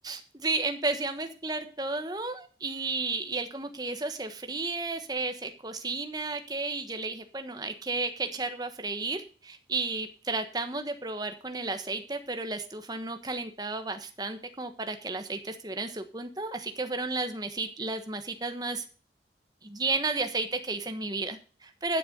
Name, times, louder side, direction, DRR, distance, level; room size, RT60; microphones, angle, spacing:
voice 1, 0.1-18.8 19.6-22.0, right 3 dB, 20° right, 7 dB, 1.3 m, -33 dB
11.5 x 6.8 x 6.8 m, 0.38 s
head